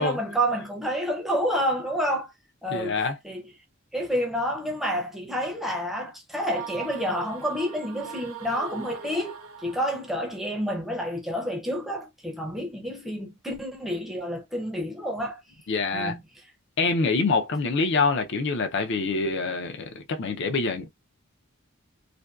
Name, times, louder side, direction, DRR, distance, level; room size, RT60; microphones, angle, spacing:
voice 1, 0.0-2.3 2.6-3.4 3.9-15.4 15.9-16.2, equal, ahead, 0.5 m, -29 dB
voice 2, 2.7-3.2 15.7-16.2 16.8-20.9, left 3 dB, 55° left, 0.5 m, -25 dB
sound 1, 6.4-10.3, right 7 dB, 65° right, 0.6 m, -40 dB
2.5 x 2.2 x 2.3 m
head